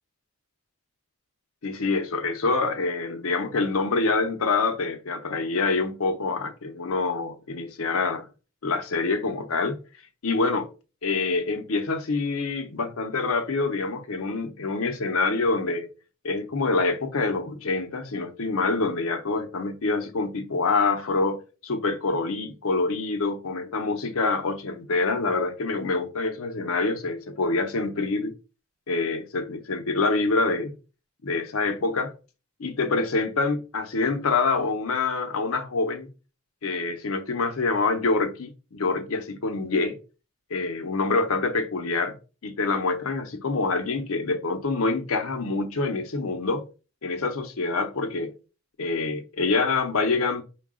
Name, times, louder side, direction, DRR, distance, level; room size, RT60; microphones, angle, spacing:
voice 1, 1.6-8.3 8.6-9.8 10.2-10.7 11.0-15.9 16.2-28.3 28.9-30.7 31.2-32.1 32.6-36.1 36.6-40.0 40.5-42.1 42.4-46.7 47.0-48.3 48.8-50.4, left 3 dB, 85° left, 0.7 m, -26 dB
4.7 x 2.3 x 3.6 m
head